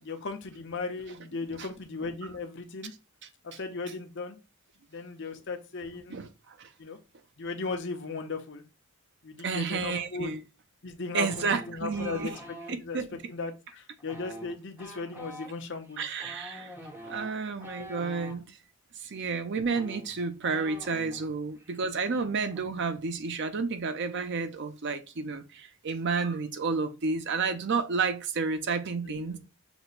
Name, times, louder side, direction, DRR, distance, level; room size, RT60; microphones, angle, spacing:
voice 1, 0.0-2.9 3.4-4.4 4.9-6.2 6.8-7.0 7.4-8.6 9.2-10.3 10.8-13.0 13.3-16.0 17.8-17.9 22.1-22.3 29.0-29.4, left 4 dB, 55° left, 0.8 m, -37 dB
voice 2, 6.1-6.7 9.4-10.4 11.1-12.3 12.7-13.2 16.0-16.7 17.0-18.6 19.0-29.4, right 4 dB, 50° right, 0.5 m, -31 dB
sound 1, 11.3-12.8 14.0-18.4 19.3-19.4 19.6-21.3 21.6-21.8 22.1-22.6, equal, 10° right, 1.0 m, -45 dB
6.0 x 2.2 x 4.0 m
head